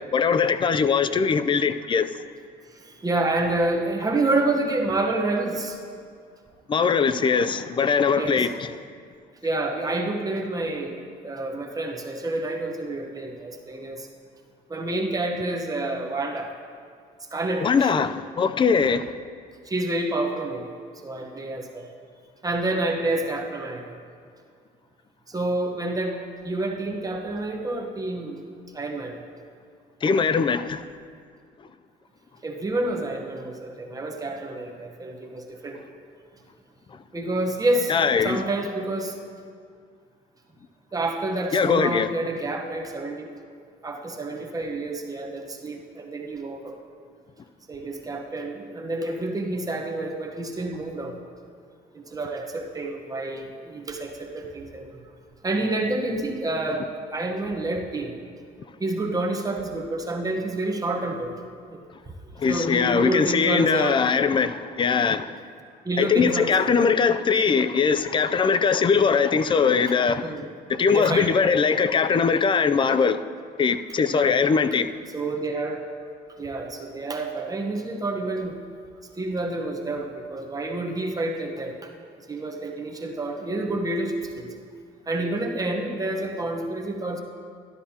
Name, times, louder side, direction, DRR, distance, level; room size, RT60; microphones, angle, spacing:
voice 1, 0.1-2.1 6.7-8.5 17.6-19.1 30.0-30.8 37.9-38.4 41.5-42.1 62.4-65.4 66.0-70.3 70.7-73.2 73.6-74.9, left 5 dB, 30° left, 0.4 m, -21 dB
voice 2, 2.7-5.8 8.1-8.5 9.4-14.1 14.7-16.5 17.3-17.9 19.6-20.8 21.0-21.9 22.4-24.0 25.3-26.2 26.4-28.4 28.7-29.2 32.4-35.8 37.1-39.1 40.9-43.3 43.8-46.8 47.7-51.2 51.9-55.0 55.4-56.9 57.1-58.1 58.8-61.3 61.7-61.8 62.5-64.0 65.8-66.8 70.2-70.4 70.9-71.3 74.1-74.4 75.1-75.8 76.4-78.6 79.2-81.9 82.3-84.5 85.1-87.2, right 2 dB, 20° right, 1.0 m, -28 dB
12.5 x 12.0 x 2.9 m
cardioid pair, 110°, 17 cm